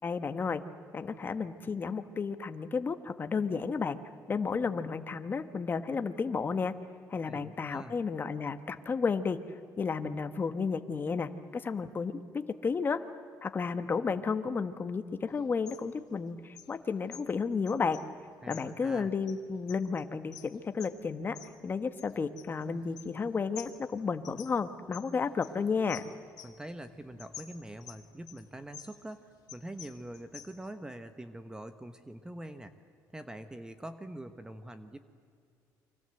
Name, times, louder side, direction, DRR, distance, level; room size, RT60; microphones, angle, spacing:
voice 1, 0.0-0.6 0.9-4.0 4.3-6.7 7.1-9.4 9.8-13.0 13.4-18.0 18.5-21.4 21.6-26.1, left 5 dB, 30° left, 9 dB, 1.3 m, -32 dB
voice 2, 7.3-8.0 18.4-19.1 26.4-35.0, right 1 dB, 10° right, 10 dB, 1.1 m, -44 dB
sound 1, 15.3-30.7, left 10 dB, 65° left, 2.2 m, -52 dB
29.5 x 24.5 x 7.9 m, 2.3 s
cardioid pair, 120°, 7 cm